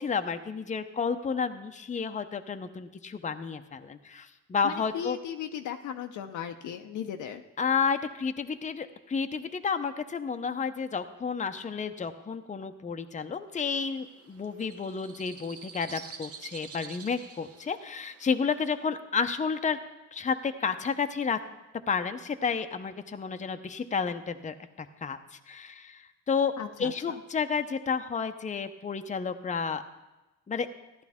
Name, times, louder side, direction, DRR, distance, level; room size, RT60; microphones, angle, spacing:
voice 1, 0.0-5.2 7.6-19.8 20.1-21.4 21.9-26.5 26.8-29.8 30.5-30.7, left 5 dB, 25° left, 8 dB, 0.7 m, -31 dB
voice 2, 4.6-7.4 26.6-27.2, left 9 dB, 75° left, 5 dB, 0.7 m, -37 dB
sound 1, 13.7-18.8, right 5 dB, 50° right, 1.0 m, -48 dB
14.5 x 11.0 x 3.6 m, 1.0 s
cardioid pair, 90°, 30 cm